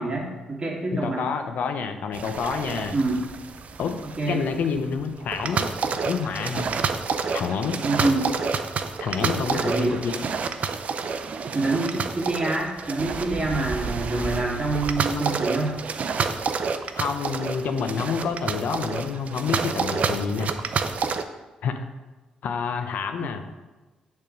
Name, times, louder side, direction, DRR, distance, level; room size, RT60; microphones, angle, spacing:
voice 1, 0.0-1.3 2.9-3.2 4.2-4.4 7.8-8.3 9.5-10.0 11.5-15.7 23.2-23.3, right 2 dB, 30° right, -3 dB, 2.0 m, -26 dB
voice 2, 0.9-2.9 3.8-5.7 6.0-6.7 7.3-7.8 9.0-10.2 14.1-14.3 16.1-16.2 17.0-20.9 21.6-21.8 22.4-23.4, left 6 dB, 65° left, 7 dB, 0.6 m, -28 dB
sound 1, 2.1-21.2, right 5 dB, 55° right, 0.5 m, -29 dB
6.6 x 3.6 x 5.1 m, 1.2 s
hypercardioid pair, 50°, 3 cm